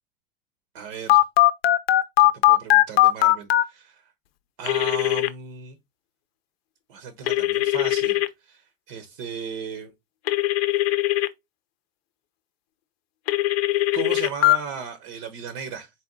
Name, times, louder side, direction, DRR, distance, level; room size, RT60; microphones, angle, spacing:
voice 1, 0.7-1.2 2.2-4.1 4.6-5.8 6.9-9.9 13.9-15.9, right 6 dB, 65° right, 0.8 m, -36 dB
Telephone, 1.1-3.6 4.7-5.3 7.3-8.3 10.3-11.3 13.3-14.6, left 15 dB, 85° left, 0.5 m, -19 dB
4.1 x 2.2 x 3.7 m
supercardioid pair, 140°, 30 cm